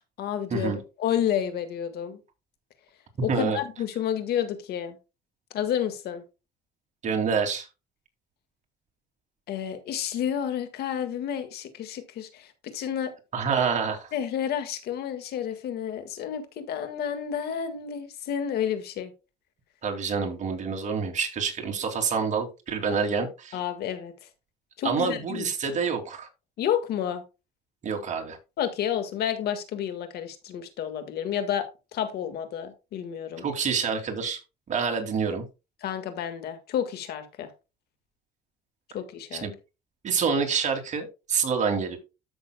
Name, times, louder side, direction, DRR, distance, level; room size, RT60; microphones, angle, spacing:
voice 1, 0.0-2.2 3.2-5.0 5.5-6.2 9.5-13.1 14.1-19.1 23.5-24.1 24.8-25.5 26.6-27.2 28.6-33.5 35.8-37.5 38.9-39.5, left 9 dB, 70° left, 1.7 m, -30 dB
voice 2, 3.3-3.6 7.0-7.7 13.3-14.1 19.8-23.6 24.8-26.3 27.8-28.4 33.4-34.4 34.7-35.4 39.3-39.5 40.0-42.0, right 5 dB, 45° right, 2.5 m, -27 dB
13.5 x 6.3 x 2.2 m
cardioid pair, 110°, 17 cm